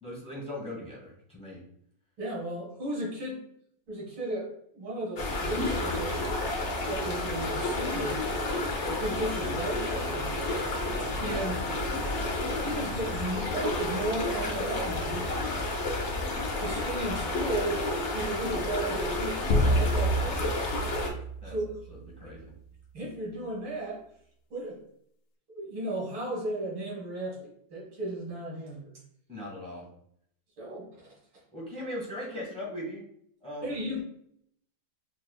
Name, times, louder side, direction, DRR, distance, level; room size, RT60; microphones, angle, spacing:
voice 1, 0.0-1.6 21.4-21.6 21.9-22.5 29.3-29.9 31.5-33.0 33.4-34.0, left 1 dB, 5° left, -4 dB, 0.9 m, -39 dB
voice 2, 2.2-3.4 3.9-6.2 6.9-8.2 8.8-10.4 11.2-11.7 12.6-15.2 16.6-17.8 18.1-20.5 21.5-21.7 22.9-24.0 24.5-24.8 25.5-28.9 30.6-31.1 33.6-34.0, right 1 dB, 80° right, -4 dB, 2.6 m, -35 dB
sound 1, 5.2-21.1, left 2 dB, 55° left, 0.7 m, -31 dB
sound 2, 19.5-22.3, equal, 80° left, 1.4 m, -28 dB
5.5 x 2.7 x 2.3 m, 0.68 s
omnidirectional pair, 2.2 m